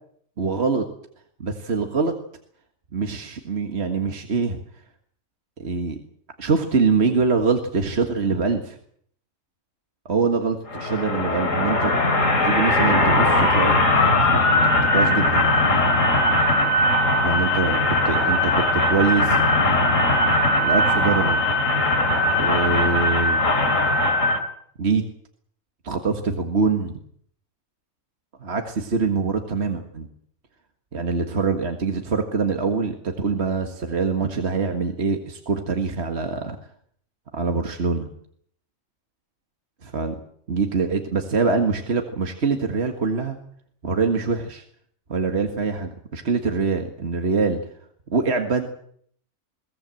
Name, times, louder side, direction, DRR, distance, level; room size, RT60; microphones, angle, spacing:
voice 1, 0.4-0.9 1.4-2.2 2.9-4.6 5.6-6.0 6.4-8.8 10.1-11.9 12.4-13.8 14.2-15.5 17.2-19.4 20.6-21.4 22.3-23.4 24.8-25.0 25.8-27.0 28.4-30.1 30.9-36.6 37.3-38.1 39.8-40.1 40.5-43.4 43.8-44.6 45.1-47.6 48.1-48.7, right 4 dB, 50° right, 4 dB, 2.0 m, -24 dB
sound 1, 10.7-24.4, left 2 dB, 70° left, 3.2 m, -20 dB
22.5 x 18.0 x 7.7 m, 0.64 s
omnidirectional pair, 1.4 m